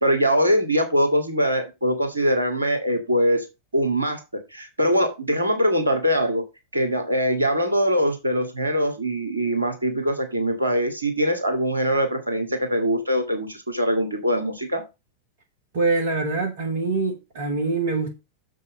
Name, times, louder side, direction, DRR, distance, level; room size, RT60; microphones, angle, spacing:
voice 1, 0.0-3.5 3.7-6.5 6.7-14.9, equal, 80° right, 2.1 m, -22 dB
voice 2, 15.7-18.1, right 3 dB, 55° right, 1.7 m, -24 dB
7.0 x 6.4 x 5.0 m
figure-of-eight pair, 90°, 0 cm